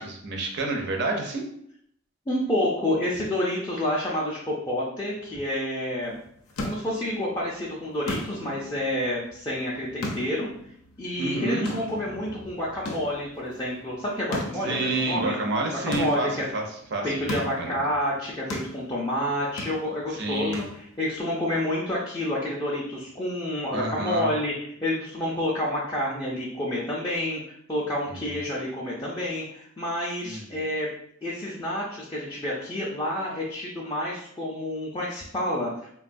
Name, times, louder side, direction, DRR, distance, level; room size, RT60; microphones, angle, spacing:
voice 1, 0.0-1.4 11.2-11.7 14.6-16.6 16.9-17.7 20.1-20.7 23.7-24.3 28.1-28.4 30.2-30.6, right 2 dB, 50° right, 1 dB, 0.6 m, -29 dB
voice 2, 2.3-6.1 6.6-10.5 11.0-15.3 15.8-16.5 17.0-30.9 31.2-35.9, left 1 dB, 15° left, -6 dB, 0.4 m, -29 dB
sound 1, 6.0-21.2, left 1 dB, 80° left, 0.6 m, -39 dB
3.5 x 2.2 x 2.5 m, 0.69 s
head